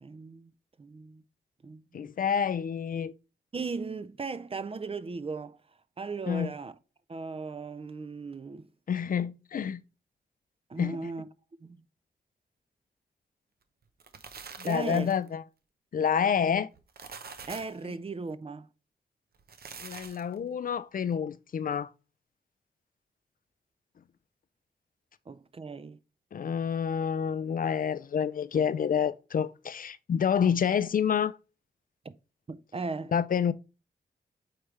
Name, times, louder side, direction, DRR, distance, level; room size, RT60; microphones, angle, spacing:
voice 1, 0.0-0.5 0.8-1.2 1.6-2.1 3.5-5.6 6.0-6.7 7.1-8.7 10.7-11.3 11.6-11.8 14.6-15.1 17.5-18.7 25.3-26.0 32.0-32.1 32.5-33.1, right 4 dB, 35° right, 0.5 m, -37 dB
voice 2, 1.9-3.1 6.3-6.5 8.9-9.8 10.8-11.1 14.6-15.4 15.9-16.7 19.8-21.9 26.3-31.4 33.1-33.5, left 7 dB, 55° left, 0.4 m, -28 dB
sound 1, 13.8-15.3 16.7-17.8 19.3-20.4, right 5 dB, 70° right, 0.8 m, -45 dB
8.7 x 3.4 x 3.2 m
cardioid pair, 70°, 17 cm